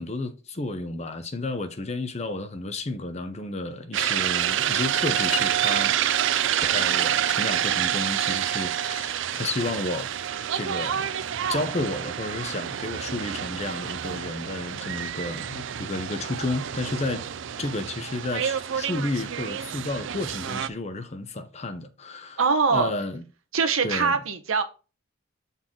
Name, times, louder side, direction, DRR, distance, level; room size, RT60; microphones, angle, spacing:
voice 1, 0.0-6.0 6.6-10.1 10.5-11.1 11.5-17.2 17.6-22.4 22.7-23.2 23.8-24.2, left 2 dB, 30° left, 0.7 m, -32 dB
sound 1, 3.9-20.7, right 10 dB, 60° right, 0.4 m, -28 dB
voice 2, 22.4-22.9 23.5-24.6, right 5 dB, 75° right, 1.0 m, -22 dB
7.5 x 4.1 x 3.7 m
head